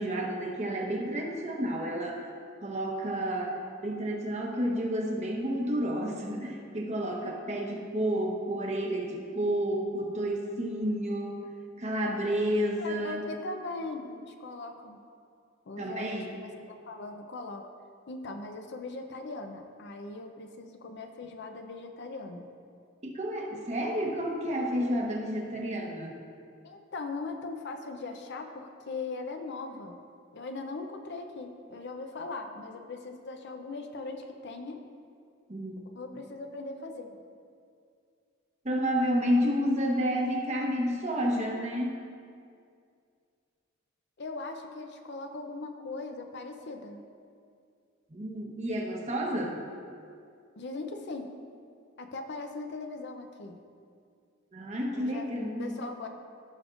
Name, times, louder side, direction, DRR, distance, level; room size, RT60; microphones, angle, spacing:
voice 1, 0.0-2.3 2.6-11.5 11.8-13.2 15.8-16.3 23.0-26.2 35.5-35.8 38.6-42.0 48.1-49.6 54.5-55.8, equal, 35° right, 0 dB, 1.0 m, -30 dB
voice 2, 12.8-15.0 15.7-17.7 18.1-22.5 26.6-30.0 30.3-34.8 36.0-37.1 44.2-47.0 50.6-51.3 52.0-53.6 54.9-56.1, left 3 dB, 60° left, 5 dB, 0.6 m, -40 dB
15.0 x 5.2 x 2.5 m, 2.3 s
head